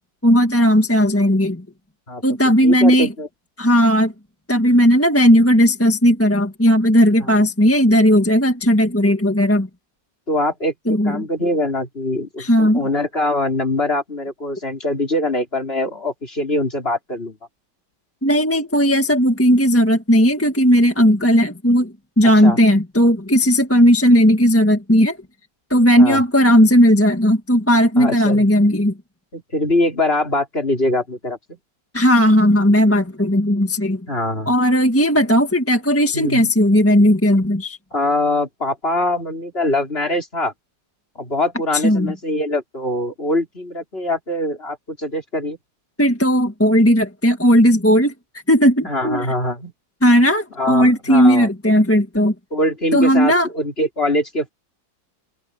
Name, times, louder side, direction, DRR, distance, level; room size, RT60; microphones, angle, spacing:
voice 1, 0.2-1.6 2.2-3.1 3.6-4.1 4.5-9.7 10.9-11.2 12.4-12.8 18.2-25.2 25.7-28.9 31.9-34.0 34.4-37.8 41.7-42.1 46.0-48.1 48.5-49.3 50.0-52.3 52.9-53.5, equal, 10° left, 1.5 m, -15 dB
voice 2, 2.6-3.3 7.2-7.3 10.3-17.4 22.4-22.6 26.0-26.2 28.0-28.5 29.3-31.6 34.1-34.5 36.1-36.5 37.9-40.5 41.2-45.6 48.8-49.7 50.6-51.5 52.5-54.5, left 1 dB, 30° left, 4.5 m, -23 dB
omnidirectional pair, 2.0 m